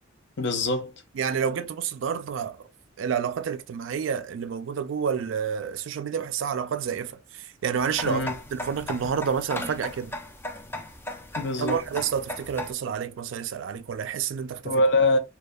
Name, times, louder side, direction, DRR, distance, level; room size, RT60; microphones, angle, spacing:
voice 1, 0.4-0.9 8.0-8.3 11.4-11.8 14.6-15.2, left 2 dB, 60° left, 0.6 m, -23 dB
voice 2, 1.2-2.7 3.0-10.1 11.4-14.8, right 7 dB, 70° right, 0.3 m, -29 dB
sound 1, 7.7-12.7, left 1 dB, 10° left, 0.4 m, -37 dB
2.7 x 2.2 x 2.2 m
head